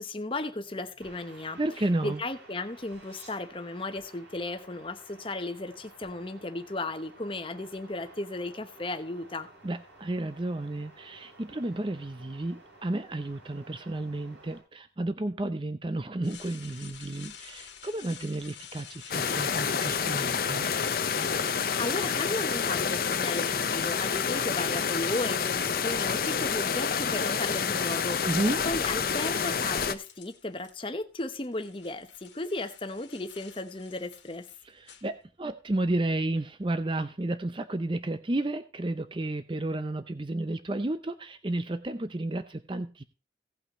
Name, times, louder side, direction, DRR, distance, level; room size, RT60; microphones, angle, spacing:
voice 1, 0.0-1.6 2.0-9.5 21.5-28.2 28.6-34.5, left 2 dB, 30° left, 8 dB, 0.9 m, -35 dB
sound 1, 1.0-14.6, right 2 dB, 80° right, 5.7 m, -53 dB
voice 2, 1.6-2.2 9.6-20.7 28.2-28.6 34.6-43.0, right 2 dB, 25° right, 10 dB, 0.6 m, -32 dB
sound 2, 16.2-26.1 26.9-30.7 31.0-35.6, left 8 dB, 85° left, 1.7 m, -50 dB
sound 3, 19.1-30.0, left 6 dB, 50° left, 0.6 m, -28 dB
17.0 x 5.7 x 4.1 m, 0.33 s
head